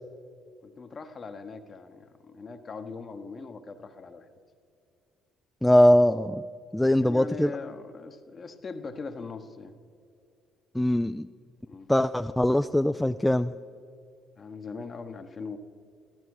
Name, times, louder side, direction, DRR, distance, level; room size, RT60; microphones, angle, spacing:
voice 1, 0.6-4.3 7.0-9.7 11.7-11.9 14.4-15.6, left 4 dB, 40° left, 7 dB, 1.0 m, -40 dB
voice 2, 5.6-6.4 6.7-7.5 10.7-11.3 11.9-13.5, left 1 dB, 10° left, 9 dB, 0.3 m, -21 dB
14.5 x 12.0 x 4.8 m, 2.4 s
hypercardioid pair, 55°, 0 cm